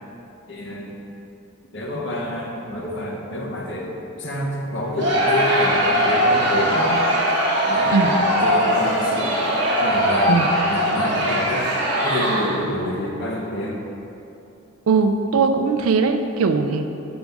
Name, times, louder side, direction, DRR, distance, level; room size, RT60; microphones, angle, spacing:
voice 1, 0.5-0.9 1.7-7.0 7.6-9.3 9.8-11.7 12.0-13.8, left 1 dB, 55° left, -1 dB, 0.8 m, -28 dB
Crowd, 5.0-12.7, equal, 50° right, 1.0 m, -20 dB
voice 2, 14.9-16.8, right 4 dB, 75° right, 7 dB, 0.4 m, -19 dB
6.1 x 5.2 x 3.5 m, 2.8 s
head